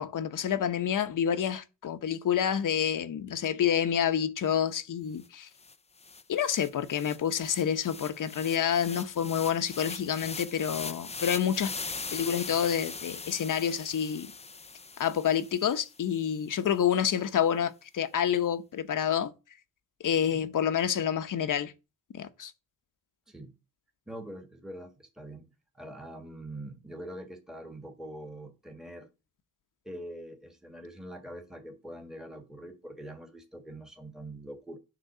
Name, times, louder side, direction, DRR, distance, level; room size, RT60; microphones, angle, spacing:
voice 1, 0.0-5.5 6.3-11.7 12.1-14.3 15.0-19.3 20.0-21.7 22.1-22.5, left 8 dB, 65° left, 1.0 m, -28 dB
sound 1, 5.2-5.3 5.6-15.9, left 4 dB, 20° left, 0.5 m, -41 dB
voice 2, 24.1-29.1 29.8-34.8, right 1 dB, ahead, 1.5 m, -44 dB
10.0 x 3.9 x 6.7 m
wide cardioid pair, 145°, 34 cm